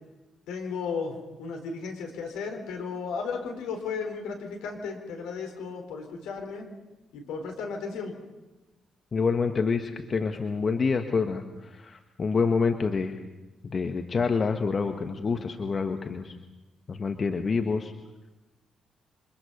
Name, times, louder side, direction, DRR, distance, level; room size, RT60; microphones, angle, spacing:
voice 1, 0.5-6.7 7.1-8.1, left 5 dB, 70° left, 3 dB, 4.0 m, -34 dB
voice 2, 9.1-13.2 13.6-16.4 16.9-17.9, left 5 dB, 45° left, 6 dB, 1.6 m, -27 dB
28.0 x 25.0 x 5.6 m, 1.1 s
hypercardioid pair, 40°, 0 cm